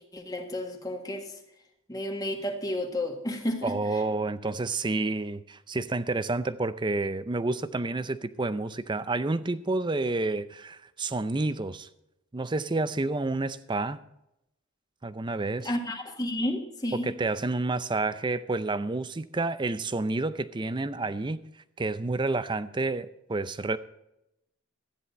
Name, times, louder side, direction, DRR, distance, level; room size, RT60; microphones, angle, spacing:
voice 1, 0.1-1.3 1.9-3.7 15.6-17.1, left 1 dB, 20° left, 1.7 m, -31 dB
voice 2, 3.6-11.9 12.3-14.0 15.0-15.7 16.9-21.4 21.8-23.8, right 2 dB, 20° right, 0.5 m, -29 dB
13.5 x 10.0 x 4.2 m
head